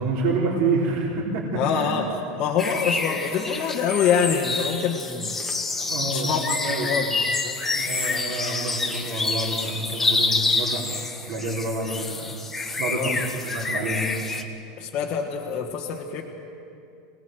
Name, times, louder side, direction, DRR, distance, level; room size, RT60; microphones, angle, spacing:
voice 1, 0.0-1.9 5.8-6.9 7.7-10.9 11.2-13.1 13.4-14.1, right 3 dB, 50° right, -6 dB, 4.0 m, -28 dB
voice 2, 1.5-2.1 2.4-5.3 6.0-6.4 6.8-7.2 7.4-7.6 12.9-13.1 14.8-16.2, left 7 dB, 35° left, -2 dB, 1.6 m, -25 dB
sound 1, 2.6-14.4, left 3 dB, 10° left, 1.1 m, -27 dB
24.0 x 19.5 x 7.8 m, 2.6 s
supercardioid pair, 170°, 3 cm